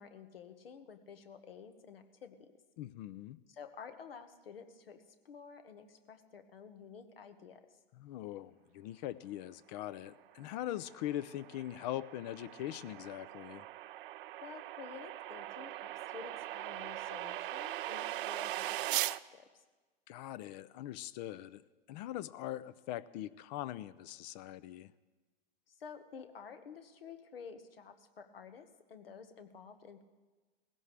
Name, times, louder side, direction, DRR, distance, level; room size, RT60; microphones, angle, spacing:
voice 1, 0.0-2.5 3.5-7.6 14.4-19.6 25.7-30.0, left 6 dB, 80° left, 8 dB, 1.6 m, -51 dB
voice 2, 2.8-3.4 8.0-13.6 20.1-21.6 21.9-24.9, left 13 dB, 45° left, 16 dB, 0.6 m, -42 dB
sound 1, 10.5-19.2, right 15 dB, 65° right, 0.5 m, -40 dB
19.0 x 16.0 x 3.4 m, 1.3 s
hypercardioid pair, 105°, 29 cm